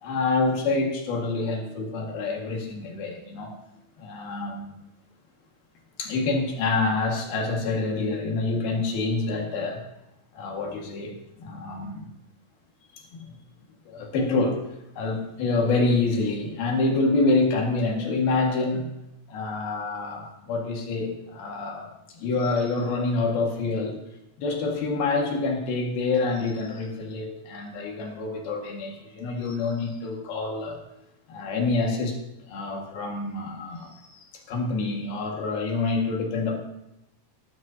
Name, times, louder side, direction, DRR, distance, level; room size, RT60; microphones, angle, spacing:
voice 1, 0.0-3.5 4.0-4.7 6.0-9.8 10.3-12.1 12.9-13.2 13.9-14.6 15.0-18.9 19.3-21.9 22.1-24.0 24.4-30.8 31.3-32.2 32.5-36.6, left 3 dB, 85° left, 1 dB, 4.0 m, -27 dB
18.5 x 12.5 x 2.9 m, 0.88 s
omnidirectional pair, 4.2 m